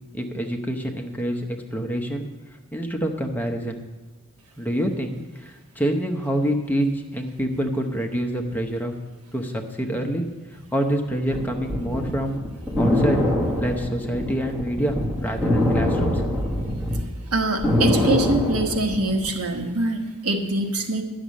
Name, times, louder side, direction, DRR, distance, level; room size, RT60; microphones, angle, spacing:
voice 1, 0.1-2.2 2.7-3.8 4.6-8.9 9.3-10.2 10.7-12.4 12.8-13.2 13.6-16.3, equal, 10° left, 2 dB, 0.8 m, -26 dB
sound 1, 11.3-17.0 17.4-19.3, left 1 dB, 10° right, 1.8 m, -23 dB
voice 2, 17.3-21.0, right 2 dB, 85° right, 5 dB, 1.2 m, -24 dB
10.5 x 6.4 x 8.3 m, 1.2 s
head